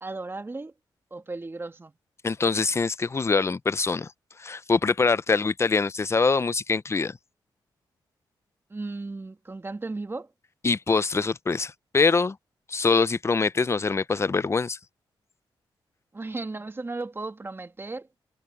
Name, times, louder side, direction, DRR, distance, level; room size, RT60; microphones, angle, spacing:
voice 1, 0.0-0.7 1.1-1.9 8.7-10.3 16.1-18.1, right 3 dB, 25° right, 2.1 m, -35 dB
voice 2, 2.2-4.1 4.4-7.2 10.6-12.4 12.7-14.8, left 4 dB, 30° left, 0.6 m, -24 dB
cardioid pair, 70°, 9 cm